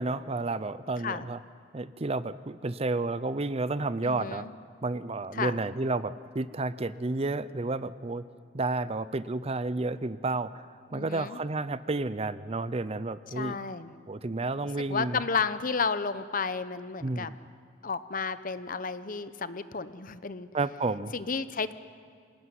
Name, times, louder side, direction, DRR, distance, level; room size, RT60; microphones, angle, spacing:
voice 1, 0.0-1.4 1.7-4.5 4.8-8.2 8.5-10.6 10.9-13.6 14.1-15.2 17.0-17.3 20.5-21.1, right 2 dB, 35° right, 15 dB, 0.6 m, -31 dB
voice 2, 4.0-4.5 5.3-5.6 10.9-11.4 13.4-13.9 14.9-17.3 17.8-20.5 21.1-21.7, left 5 dB, 50° left, 13 dB, 0.9 m, -32 dB
26.5 x 18.0 x 9.6 m, 2.3 s
head